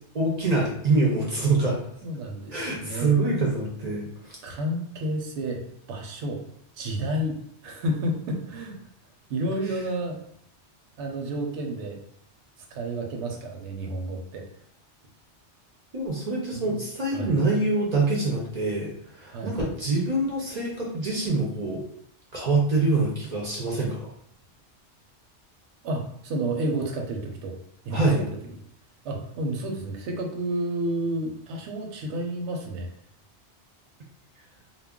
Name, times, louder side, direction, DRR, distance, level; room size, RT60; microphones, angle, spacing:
voice 1, 0.1-1.8 2.5-4.4 15.9-21.8 22.3-24.1 27.9-28.2, right 2 dB, 50° right, -3 dB, 0.5 m, -25 dB
voice 2, 2.0-3.1 4.4-6.4 6.7-7.4 7.6-8.8 9.3-10.2 11.0-12.0 12.7-14.4 16.5-16.8 17.1-17.4 19.3-19.6 25.8-27.6 27.9-28.0 29.0-32.9, right 1 dB, 80° right, 2 dB, 0.9 m, -30 dB
2.3 x 2.0 x 3.5 m, 0.69 s
omnidirectional pair, 1.2 m